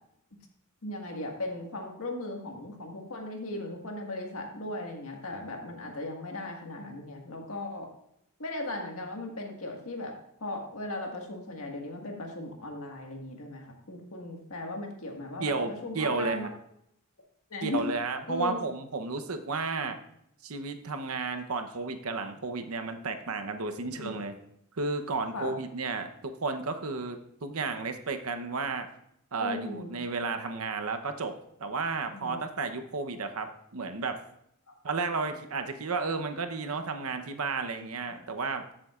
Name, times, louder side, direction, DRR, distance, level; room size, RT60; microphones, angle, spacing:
voice 1, 0.8-7.9 8.4-10.1 10.4-16.5 17.5-17.9 18.3-18.6 23.9-24.2 25.3-25.5 29.4-29.9 32.1-32.4 34.7-34.8 37.8-37.9, left 2 dB, 80° left, 1 dB, 1.7 m, -37 dB
voice 2, 15.4-16.5 17.6-20.0 20.4-24.3 24.8-28.9 29.3-31.3 31.6-34.2 34.8-38.6, right 4 dB, 90° right, 7 dB, 0.9 m, -32 dB
14.0 x 7.4 x 2.4 m, 0.76 s
head